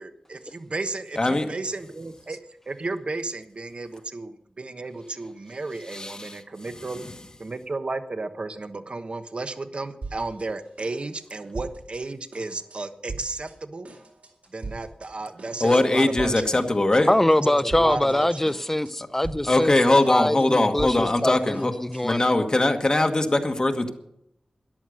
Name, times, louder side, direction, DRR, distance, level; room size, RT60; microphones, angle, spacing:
voice 1, 0.0-7.0 7.4-13.9 14.5-16.6 17.4-18.5, right 3 dB, 50° right, 1.2 m, -33 dB
voice 2, 1.2-1.5 5.9-6.4 15.6-17.1 19.5-21.7 22.0-23.9, left 2 dB, 35° left, 1.4 m, -21 dB
sound 1, 10.0-10.5 10.8-12.0 12.3-12.8 13.1-13.5 13.8-15.1 15.4-15.9 16.2-16.6 16.9-18.2 18.5-18.9 19.2-22.3, right 3 dB, 75° right, 4.2 m, -40 dB
voice 3, 17.1-19.7 20.1-22.5, left 1 dB, 10° left, 0.6 m, -23 dB
13.5 x 11.0 x 6.4 m
wide cardioid pair, 95°, 2 cm